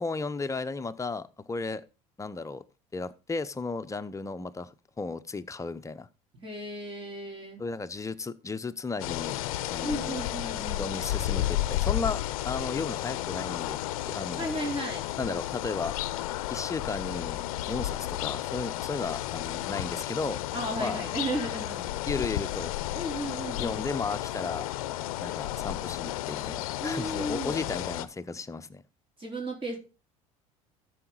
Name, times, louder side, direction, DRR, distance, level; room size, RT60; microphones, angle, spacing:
voice 1, 0.0-1.8 2.2-2.6 2.9-6.1 7.6-9.4 9.7-10.2 10.8-13.8 14.1-14.5 15.2-15.9 16.5-20.4 20.8-21.0 22.1-22.7 23.6-24.7 25.2-28.8, left 4 dB, 15° left, 0.8 m, -34 dB
voice 2, 6.4-7.6 9.8-10.9 14.4-15.1 20.5-21.8 22.9-23.8 26.8-27.7 29.2-29.8, right 1 dB, 30° right, 4.2 m, -34 dB
sound 1, 9.0-28.1, left 14 dB, 80° left, 0.6 m, -32 dB
13.5 x 5.1 x 3.9 m
hypercardioid pair, 75°, 18 cm